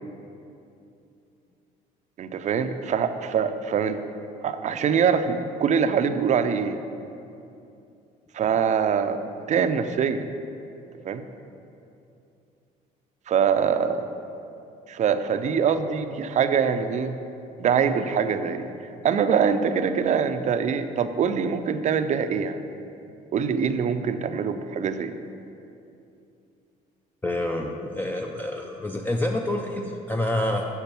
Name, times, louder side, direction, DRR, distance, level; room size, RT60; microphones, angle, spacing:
voice 1, 2.2-4.0 4.4-6.8 8.3-10.2 11.0-11.3 13.3-14.1 14.9-17.2 17.6-18.7 19.0-22.6 23.3-25.2, right 7 dB, 45° right, 9 dB, 0.5 m, -24 dB
voice 2, 27.2-30.7, left 1 dB, 10° left, 2 dB, 0.5 m, -27 dB
6.9 x 6.3 x 5.9 m, 2.7 s
cardioid pair, 110°, 17 cm